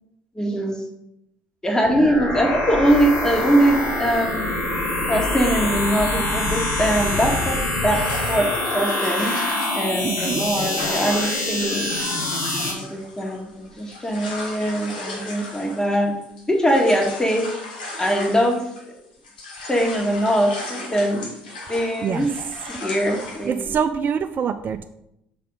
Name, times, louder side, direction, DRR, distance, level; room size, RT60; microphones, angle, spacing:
voice 1, 0.4-0.8 1.6-4.5 5.1-9.4 9.7-11.9 12.6-16.1 16.5-17.5 18.0-18.6 19.7-21.3 21.7-22.3 22.7-23.7, equal, 15° left, 1 dB, 1.8 m, -22 dB
sound 1, 1.8-12.7, left 2 dB, 65° left, 2.6 m, -25 dB
sound 2, 7.9-19.0 19.2-23.6, left 2 dB, 90° left, 1.3 m, -36 dB
voice 2, 10.0-10.4 22.0-22.3 23.4-24.8, right 7 dB, 45° right, 9 dB, 0.4 m, -25 dB
6.6 x 4.2 x 5.4 m, 0.80 s
hypercardioid pair, 60°, 5 cm